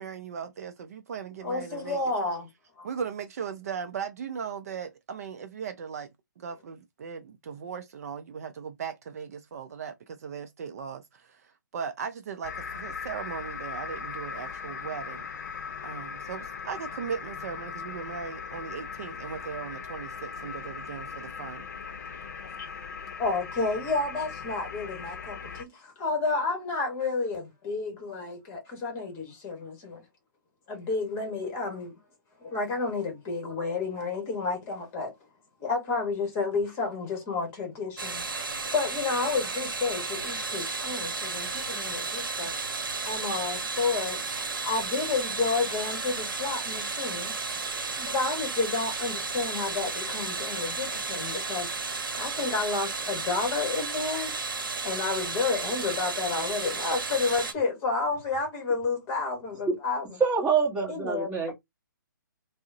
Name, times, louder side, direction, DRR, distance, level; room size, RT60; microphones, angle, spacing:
voice 1, 0.0-2.0 2.8-6.1 6.4-15.3 15.8-21.6, right 7 dB, 45° right, 0.4 m, -38 dB
voice 2, 1.4-2.5 2.8-2.9 21.9-22.0 22.3-22.7 23.2-30.0 30.7-31.9 32.4-35.1 35.6-38.4 38.7-42.5 43.0-47.4 47.9-51.9 52.2-54.3 54.8-60.0 60.9-61.3, left 4 dB, 20° left, 1.1 m, -31 dB
sound 1, 12.4-25.6, left 6 dB, 55° left, 0.6 m, -39 dB
sound 2, 38.0-57.5, right 4 dB, 80° right, 0.8 m, -33 dB
voice 3, 60.2-61.5, right 6 dB, 10° right, 1.1 m, -25 dB
3.5 x 2.0 x 2.6 m
hypercardioid pair, 145°, 11 cm